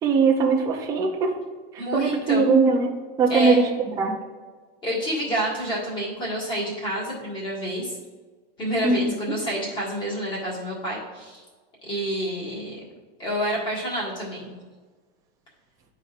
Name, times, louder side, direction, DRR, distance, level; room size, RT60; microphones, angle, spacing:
voice 1, 0.0-1.3 1.9-2.9 3.2-3.7 4.0-4.2 8.8-9.0, right 4 dB, 10° right, 0 dB, 0.4 m, -20 dB
voice 2, 1.8-2.5 3.3-3.6 4.8-8.0 8.6-11.4 11.9-12.8 13.2-14.5, equal, 15° left, -5 dB, 1.7 m, -28 dB
12.0 x 4.2 x 2.4 m, 1.4 s
supercardioid pair, 175°, 31 cm